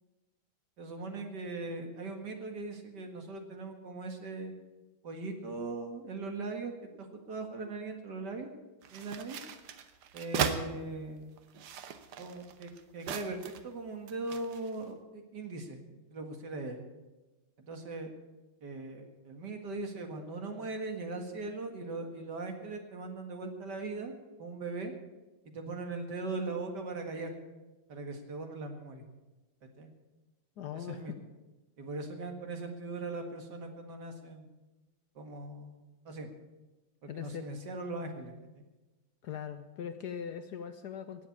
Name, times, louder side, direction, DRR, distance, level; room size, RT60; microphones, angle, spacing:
voice 1, 0.8-4.5 5.0-6.7 7.0-8.5 8.9-9.4 10.1-11.3 12.2-15.8 16.1-16.8 17.6-18.1 18.6-24.1 24.4-24.9 25.5-27.3 27.9-29.0 29.8-29.9 30.7-31.1 31.8-34.5 35.2-36.3 37.0-38.6, right 3 dB, 50° right, 5 dB, 2.2 m, -40 dB
sound 1, 8.8-10.6 11.4-13.7 14.1-14.7, right 8 dB, 85° right, 1.9 m, -37 dB
voice 2, 30.6-31.1 37.1-37.4 39.2-41.3, left 8 dB, 65° left, 9 dB, 1.0 m, -40 dB
18.0 x 7.3 x 8.6 m, 1.1 s
omnidirectional pair, 2.4 m